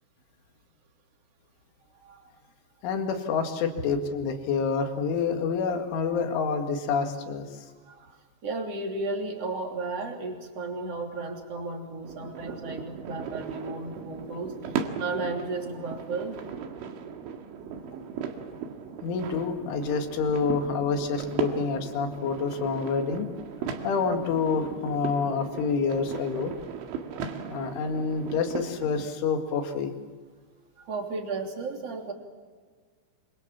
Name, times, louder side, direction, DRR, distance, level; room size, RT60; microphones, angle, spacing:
voice 1, 2.8-7.7 19.0-23.3 23.8-26.5 27.5-29.9, left 5 dB, 85° left, 5 dB, 4.5 m, -28 dB
voice 2, 7.9-8.2 8.4-14.7 15.0-16.4 30.8-32.1, right 3 dB, 35° right, 3 dB, 3.7 m, -34 dB
sound 1, 12.0-29.1, right 7 dB, 85° right, 4.3 m, -37 dB
27.0 x 27.0 x 7.4 m, 1.5 s
omnidirectional pair, 5.4 m